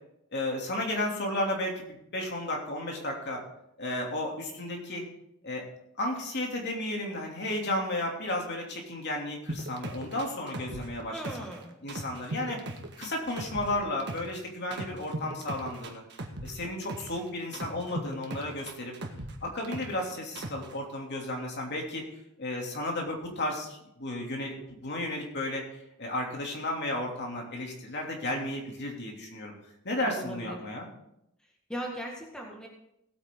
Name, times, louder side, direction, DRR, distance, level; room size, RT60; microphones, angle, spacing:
voice 1, 0.3-3.4 3.8-5.0 5.4-5.6 6.0-11.2 11.8-12.6 13.0-16.0 16.4-18.9 19.4-22.0 22.4-29.5 29.8-30.9, left 1 dB, 55° left, 0 dB, 2.9 m, -33 dB
sound 1, 9.5-11.6 11.9-14.4 14.7-17.2 17.5-20.0 20.4-20.7, right 2 dB, 55° right, 1.6 m, -38 dB
voice 2, 11.1-11.8 30.0-30.6 31.7-32.7, right 1 dB, 5° left, -1 dB, 1.9 m, -38 dB
18.0 x 8.8 x 3.8 m, 0.79 s
head